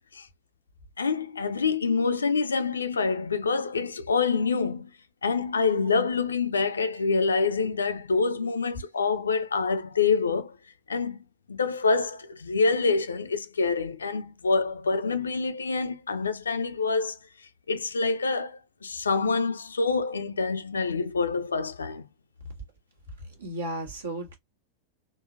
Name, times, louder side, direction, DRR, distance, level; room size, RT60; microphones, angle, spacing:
voice 1, 1.0-4.9 5.2-10.6 10.9-11.2 11.5-17.2 17.7-22.0, left 4 dB, 75° left, 0.4 m, -26 dB
voice 2, 23.3-24.3, right 2 dB, 70° right, 1.3 m, -34 dB
3.8 x 2.1 x 2.4 m
figure-of-eight pair, 90°, 0 cm